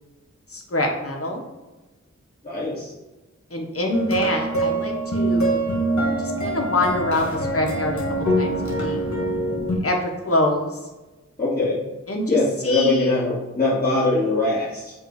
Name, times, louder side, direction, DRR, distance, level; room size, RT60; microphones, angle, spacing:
voice 1, 0.5-1.4 3.5-5.6 6.2-8.0 8.4-9.0 9.8-10.8 12.1-13.2, left 1 dB, 50° left, 1 dB, 1.3 m, -25 dB
voice 2, 2.4-2.9 11.4-11.8 12.3-14.9, left 2 dB, 30° left, -10 dB, 2.0 m, -22 dB
sound 1, 3.9-9.8, right 1 dB, 70° left, 1.7 m, -24 dB
7.5 x 2.7 x 4.8 m, 1.1 s
wide cardioid pair, 45°, 29 cm